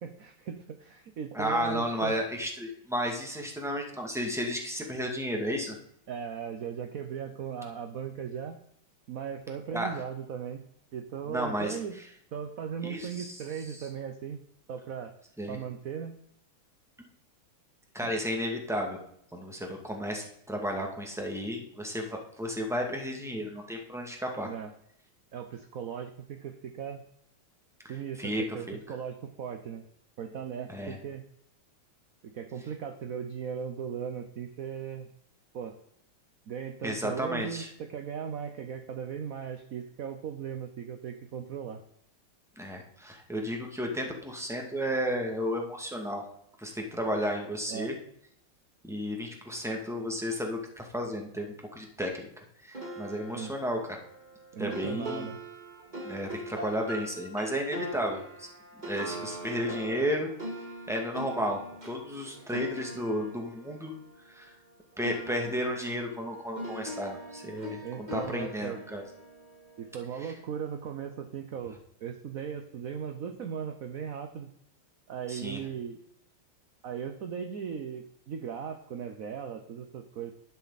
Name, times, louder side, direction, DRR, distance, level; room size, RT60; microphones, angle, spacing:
voice 1, 0.0-2.2 6.1-8.6 9.1-10.6 10.9-12.0 12.3-14.4 14.7-15.1 15.5-16.2 18.0-18.1 24.4-24.7 25.3-27.0 27.9-29.8 30.2-31.2 32.3-35.1 35.5-35.8 36.5-41.8 47.7-47.9 53.3-53.5 54.5-55.4 62.4-62.6 67.8-68.8 69.8-74.5 75.1-76.0 76.8-80.3, right 7 dB, 55° right, 7 dB, 1.1 m, -38 dB
voice 2, 1.3-5.8 9.7-10.0 11.3-11.8 12.8-13.3 15.4-15.6 17.9-19.0 19.3-24.5 28.2-28.8 30.7-31.0 36.8-37.7 42.6-46.2 46.6-47.9 48.8-52.3 52.6-54.0 54.6-55.3 56.0-58.5 58.8-60.3 60.9-63.9 64.3-64.5 65.0-69.0 70.2-70.3 75.3-75.6, equal, ahead, 1 dB, 2.2 m, -33 dB
sound 1, 52.7-64.7 65.0-70.2, right 1 dB, 20° right, 2.0 m, -42 dB
11.5 x 11.5 x 4.2 m, 0.68 s
omnidirectional pair, 2.3 m